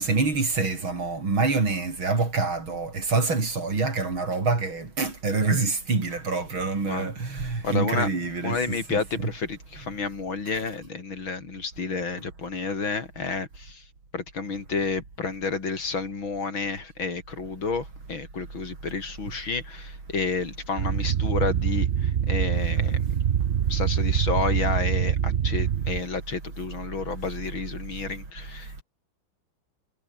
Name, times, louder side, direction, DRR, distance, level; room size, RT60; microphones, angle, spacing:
voice 1, 0.0-9.3, right 3 dB, 85° right, 5.6 m, -26 dB
voice 2, 7.6-8.1 8.4-13.8 14.1-23.2 23.7-28.8, left 4 dB, 80° left, 4.5 m, -30 dB
sound 1, 20.8-26.0, right 9 dB, 55° right, 0.7 m, -24 dB
omnidirectional pair, 2.2 m